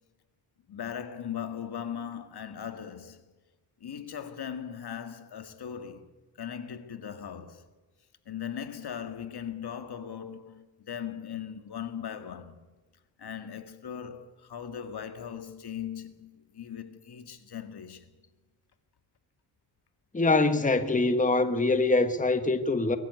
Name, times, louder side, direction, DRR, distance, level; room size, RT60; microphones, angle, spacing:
voice 1, 0.7-3.2 3.8-6.1 6.4-7.7 8.3-12.6 13.2-18.1, left 8 dB, 60° left, 2.0 m, -39 dB
voice 2, 20.1-23.0, left 3 dB, 20° left, 1.4 m, -24 dB
22.5 x 13.5 x 9.6 m
cardioid pair, 110°, 43 cm